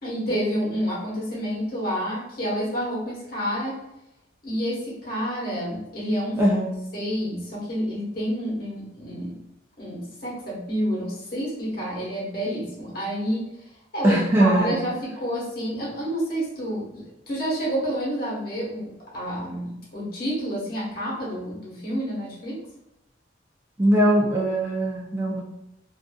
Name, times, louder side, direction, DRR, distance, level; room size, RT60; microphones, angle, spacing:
voice 1, 0.0-3.8 4.4-6.4 6.9-9.4 9.8-22.6, equal, 50° left, -6 dB, 1.1 m, -29 dB
voice 2, 6.4-6.7 14.0-14.8 23.8-25.4, right 1 dB, 15° right, -4 dB, 0.3 m, -20 dB
2.5 x 2.5 x 2.2 m, 0.91 s
head